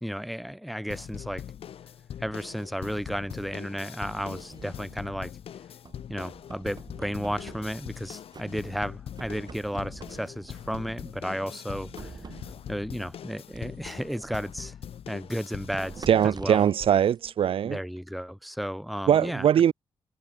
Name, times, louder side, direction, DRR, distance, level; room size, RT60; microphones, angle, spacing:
voice 1, 0.0-1.4 2.2-5.3 6.1-12.1 12.7-14.7 15.1-16.7 17.6-19.5, equal, ahead, 0.6 m, -33 dB
sound 1, 0.9-16.3, left 9 dB, 70° left, 0.8 m, -42 dB
sound 2, 2.5-3.6 4.1-5.4 5.9-8.0 8.3-8.9 9.2-11.1 11.7-12.8 13.5-18.0, right 4 dB, 45° right, 3.6 m, -46 dB
voice 2, 16.1-17.8 19.1-19.7, right 9 dB, 65° right, 0.5 m, -21 dB
cardioid pair, 65°, 10 cm